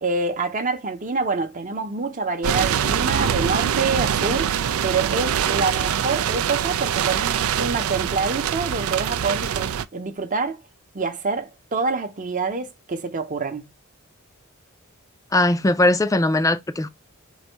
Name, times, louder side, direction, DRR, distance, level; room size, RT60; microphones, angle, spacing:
voice 1, 0.0-10.6 10.9-13.6, right 4 dB, 40° right, 0.8 m, -26 dB
sound 1, 2.4-9.9, right 8 dB, 85° right, 0.4 m, -24 dB
voice 2, 15.3-16.9, left 1 dB, 15° left, 0.4 m, -19 dB
4.0 x 2.6 x 4.5 m
head